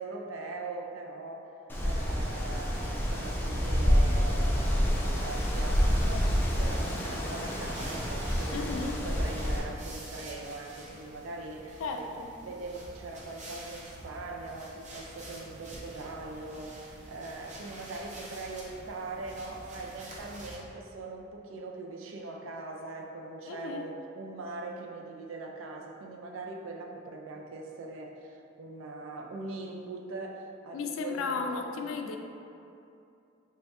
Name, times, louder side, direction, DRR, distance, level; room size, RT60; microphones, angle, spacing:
voice 1, 0.0-1.5 1.8-12.1 12.4-31.9, right 3 dB, 85° right, 1 dB, 0.4 m, -41 dB
Wind, 1.7-9.6, equal, 10° left, 0.3 m, -28 dB
sound 1, 5.1-20.6, right 1 dB, 35° right, 0.6 m, -48 dB
voice 2, 8.5-9.0 11.8-12.3 23.5-23.9 30.7-32.2, left 4 dB, 85° left, 5 dB, 0.3 m, -34 dB
3.3 x 2.3 x 4.1 m, 2.7 s
head